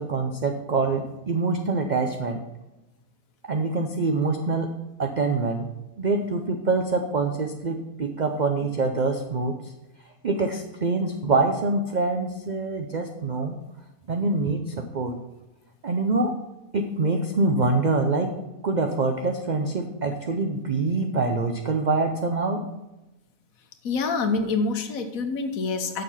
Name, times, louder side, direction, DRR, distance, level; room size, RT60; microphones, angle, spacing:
voice 1, 0.0-2.4 3.5-4.7 5.0-5.7 6.0-9.7 10.2-13.5 14.1-15.2 15.8-16.4 16.7-22.6, right 3 dB, 70° right, 4 dB, 0.4 m, -25 dB
voice 2, 23.8-26.0, left 4 dB, 65° left, 7 dB, 1.3 m, -26 dB
6.8 x 6.2 x 5.6 m, 1.0 s
omnidirectional pair, 1.6 m